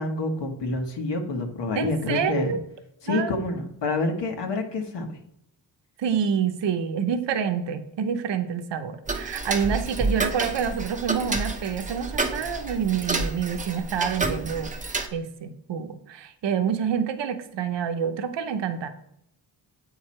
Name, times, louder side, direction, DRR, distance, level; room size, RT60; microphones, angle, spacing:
voice 1, 0.0-2.6 3.0-5.1, left 2 dB, 75° left, 3 dB, 1.5 m, -28 dB
voice 2, 1.8-2.6 3.1-3.3 6.0-14.7 15.1-18.9, right 7 dB, 80° right, 8 dB, 0.8 m, -27 dB
Tick-tock, 9.1-15.1, right 3 dB, 20° right, 0.7 m, -29 dB
8.2 x 4.8 x 4.4 m, 0.75 s
wide cardioid pair, 125°, 43 cm